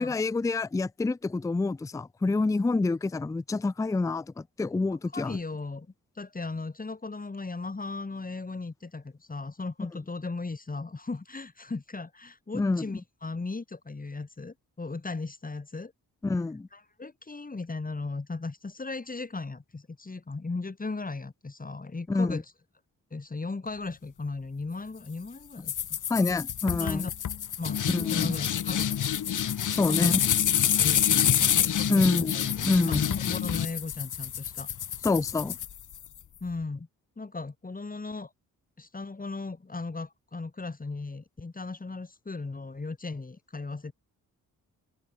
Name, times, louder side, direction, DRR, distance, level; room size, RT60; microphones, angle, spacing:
voice 1, 0.0-5.4 12.5-12.8 16.2-16.7 22.1-22.4 26.1-27.0 27.9-28.3 29.7-30.2 31.9-32.3 32.6-33.0 35.0-35.6, left 3 dB, 10° left, 0.4 m, -27 dB
voice 2, 5.1-5.9 6.2-15.9 16.7-22.5 23.1-25.8 26.8-27.1 27.6-27.8 28.1-29.0 29.9-30.3 30.8-34.7 36.4-36.9 37.2-38.3 38.8-43.9, left 3 dB, 25° left, 5.3 m, -37 dB
sound 1, 25.7-36.2, left 9 dB, 65° left, 1.9 m, -27 dB
cardioid pair, 100°, 34 cm